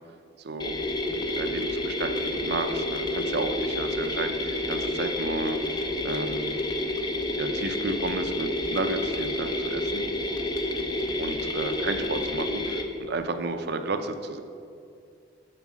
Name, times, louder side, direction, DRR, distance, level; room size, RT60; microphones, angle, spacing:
sound 1, 0.6-12.8, left 1 dB, 25° left, 0.6 m, -29 dB
voice 1, 1.4-6.5 7.4-10.0 11.2-14.4, right 3 dB, 60° right, 8 dB, 0.5 m, -32 dB
7.4 x 4.8 x 6.1 m, 2.5 s
head